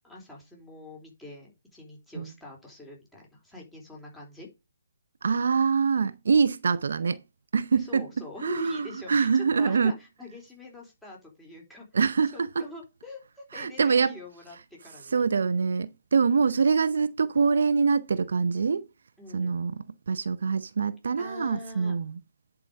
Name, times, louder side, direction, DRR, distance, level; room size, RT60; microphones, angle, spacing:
voice 1, 0.0-4.5 7.8-9.3 9.6-14.6 14.8-15.3 19.2-19.6 21.2-22.0, left 2 dB, 5° left, 3.9 m, -44 dB
voice 2, 5.2-7.2 7.5-8.0 8.4-9.9 11.9-12.7 13.5-14.2 15.1-18.9 19.3-22.2, right 5 dB, 65° right, 0.7 m, -25 dB
10.5 x 5.0 x 5.2 m
figure-of-eight pair, 140°, 0 cm